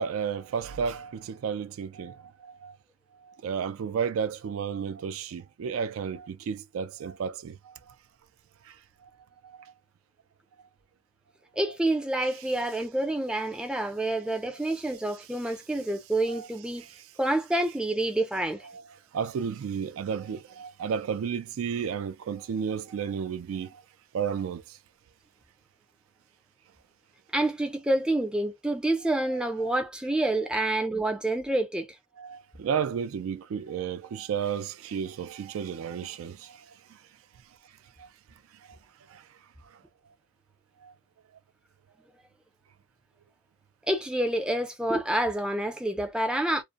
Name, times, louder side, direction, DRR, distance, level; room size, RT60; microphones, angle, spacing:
voice 1, 0.0-2.8 3.2-7.8 8.7-8.8 9.4-9.7 16.3-16.5 19.1-23.8 24.1-24.6 29.6-29.8 32.2-36.6 38.0-38.1 39.1-39.2 40.8-40.9, right 7 dB, 80° right, 0.3 m, -32 dB
voice 2, 11.6-16.8 17.2-18.7 27.3-31.9 43.9-46.6, right 1 dB, 5° right, 0.4 m, -28 dB
2.5 x 2.0 x 2.5 m
head